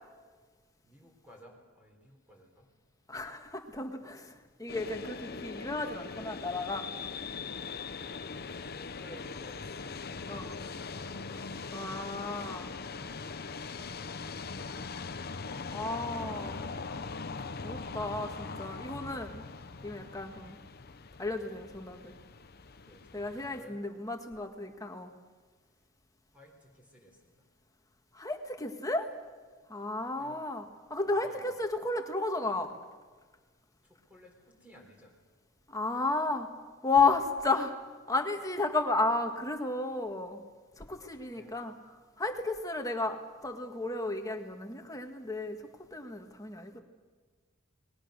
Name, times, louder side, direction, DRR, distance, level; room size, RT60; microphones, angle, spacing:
voice 1, 0.8-2.7 6.8-6.9 7.9-9.7 10.1-11.5 19.3-19.5 22.8-23.9 26.3-27.4 30.1-30.4 31.1-31.6 33.8-35.2 40.8-41.6, equal, 5° right, 0 dB, 4.1 m, -56 dB
voice 2, 3.1-6.9 10.3-10.6 11.7-12.7 15.7-16.7 17.6-19.5 19.8-20.6 21.2-22.2 23.1-25.1 28.1-29.1 29.7-30.6 30.9-32.7 35.7-36.5 36.8-37.7 38.1-40.4 40.8-41.7 42.2-46.8, left 3 dB, 15° left, 5 dB, 1.8 m, -33 dB
sound 1, 4.7-23.6, left 4 dB, 50° left, 0.9 m, -41 dB
29.5 x 21.0 x 6.7 m, 1.4 s
head